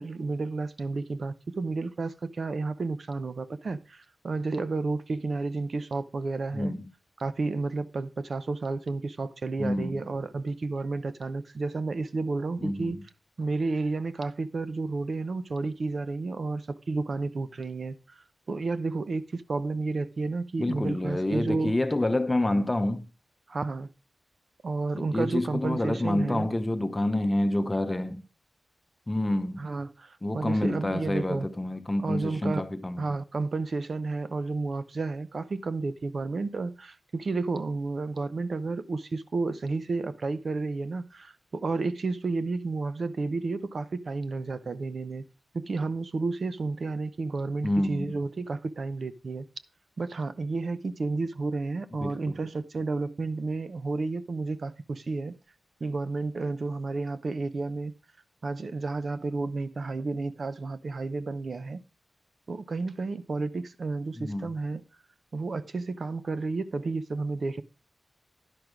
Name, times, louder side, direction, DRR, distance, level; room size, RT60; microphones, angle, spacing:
voice 1, 0.0-6.7 7.2-13.0 13.4-21.7 23.5-23.9 24.6-26.5 29.6-31.5 32.0-32.6 33.0-45.3 45.5-49.5 50.0-55.4 55.8-57.9 58.4-61.8 62.5-64.8 65.3-67.6, right 3 dB, 60° right, 0.7 m, -31 dB
voice 2, 6.5-6.9 9.6-10.0 12.6-13.0 20.6-23.1 24.9-28.3 29.1-29.7 30.2-33.1 47.6-48.1 52.0-52.3 64.2-64.5, left 1 dB, 20° left, 0.8 m, -28 dB
11.0 x 6.0 x 5.0 m
wide cardioid pair, 90°, 0 cm